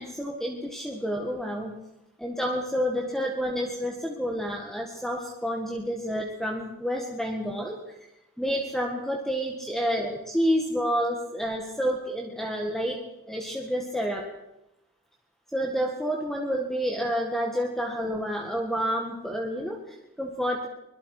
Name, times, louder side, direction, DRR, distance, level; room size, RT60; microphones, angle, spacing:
voice 1, 0.0-1.8 2.2-8.0 8.4-13.0 13.3-14.3 15.5-20.7, equal, ahead, 0 dB, 1.7 m, -29 dB
24.0 x 22.5 x 4.9 m, 0.92 s
head